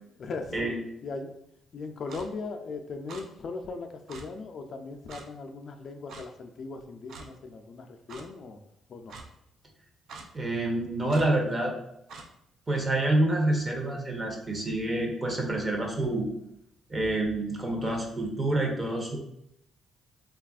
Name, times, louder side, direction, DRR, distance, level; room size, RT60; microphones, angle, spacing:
voice 1, 0.2-1.3 1.7-8.6 8.9-9.2, left 3 dB, 55° left, 5 dB, 0.3 m, -38 dB
Clock, 2.1-2.3 3.1-3.2 4.1-4.2 5.1-5.3 6.1-6.3 7.1-7.3 8.1-8.2 9.1-9.3 10.1-10.3 11.1-11.3 12.1-12.3, right 4 dB, 70° right, 0.4 m, -44 dB
voice 2, 10.3-11.7 12.7-16.3 16.9-19.2, right 1 dB, 25° right, 1 dB, 0.7 m, -27 dB
3.3 x 2.3 x 2.3 m, 0.78 s
cardioid pair, 90°, 0 cm